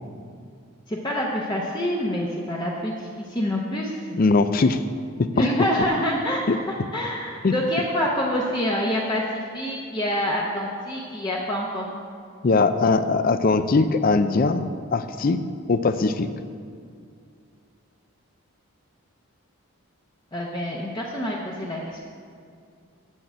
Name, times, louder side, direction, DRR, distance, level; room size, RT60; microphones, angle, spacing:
voice 1, 0.9-3.9 5.4-11.9 20.3-22.0, equal, 20° left, -3 dB, 0.7 m, -26 dB
voice 2, 4.1-4.8 5.2-5.4 6.5-6.6 7.4-7.5 12.4-16.3, left 3 dB, 40° left, 11 dB, 0.4 m, -21 dB
7.5 x 6.4 x 8.0 m, 2.3 s
head